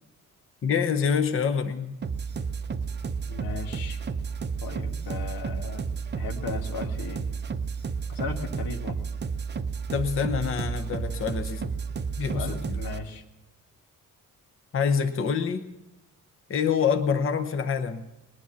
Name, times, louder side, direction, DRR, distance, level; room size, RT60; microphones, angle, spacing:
voice 1, 0.6-2.0 9.9-11.7 12.2-12.6 14.7-15.7 16.5-18.1, left 6 dB, 40° left, 9 dB, 0.8 m, -26 dB
sound 1, 2.0-13.0, right 5 dB, 30° right, 0.6 m, -32 dB
voice 2, 3.3-4.0 4.6-5.9 6.1-7.2 8.1-9.0 12.2-13.2, left 4 dB, 85° left, 5 dB, 1.6 m, -36 dB
20.0 x 10.0 x 7.0 m, 0.94 s
cardioid pair, 145°, 34 cm